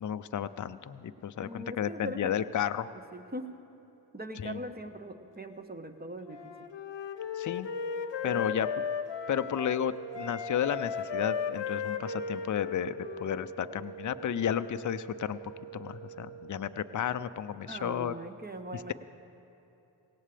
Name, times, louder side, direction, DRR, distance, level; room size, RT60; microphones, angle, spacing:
voice 1, 0.0-2.9 4.4-4.6 7.4-7.7 8.2-8.7 9.3-15.4 15.7-18.1 18.7-18.9, left 9 dB, 40° left, 11 dB, 0.6 m, -32 dB
voice 2, 1.4-2.4 3.1-3.5 4.1-6.7 8.2-8.6 17.7-18.9, right 1 dB, 20° right, 7 dB, 1.2 m, -41 dB
Wind instrument woodwind instrument, 6.3-9.8 10.1-13.9, left 7 dB, 65° left, 1.0 m, -36 dB
sound 1, 9.0-17.2, right 11 dB, 65° right, 1.5 m, -46 dB
18.0 x 17.0 x 3.4 m, 3.0 s
supercardioid pair, 40°, 47 cm